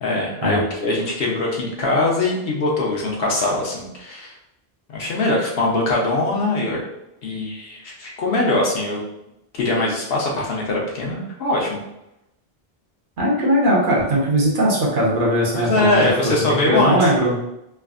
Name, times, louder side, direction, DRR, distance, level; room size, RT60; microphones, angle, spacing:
voice 1, 0.0-4.3 4.9-6.8 7.2-9.0 9.5-11.8 15.5-17.0, left 2 dB, 70° left, -2 dB, 0.9 m, -22 dB
voice 2, 13.2-16.1 16.4-17.4, right 1 dB, 55° right, -4 dB, 0.9 m, -19 dB
3.3 x 2.0 x 2.4 m, 0.87 s
omnidirectional pair, 1.1 m